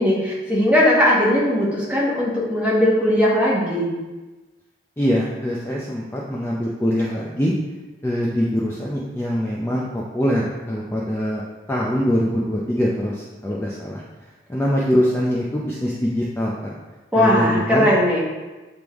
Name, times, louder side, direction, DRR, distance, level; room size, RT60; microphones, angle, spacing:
voice 1, 0.0-3.9 17.1-18.2, left 1 dB, 10° right, -5 dB, 1.2 m, -18 dB
voice 2, 5.0-7.5 8.0-11.4 11.7-14.0 14.5-16.7 17.1-17.9, equal, 15° left, -4 dB, 0.5 m, -23 dB
7.9 x 3.5 x 3.5 m, 1.2 s
head